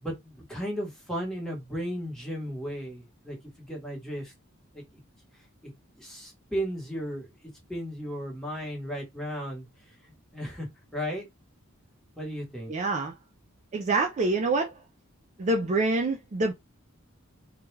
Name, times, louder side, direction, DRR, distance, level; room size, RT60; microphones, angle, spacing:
voice 1, 0.0-4.3 4.7-5.0 5.6-5.7 6.0-7.3 7.7-11.2 12.2-12.7, equal, ahead, 1.0 m, -35 dB
voice 2, 12.7-13.1 13.7-14.7 15.4-16.5, right 2 dB, 35° right, 0.3 m, -26 dB
2.3 x 2.2 x 3.1 m
head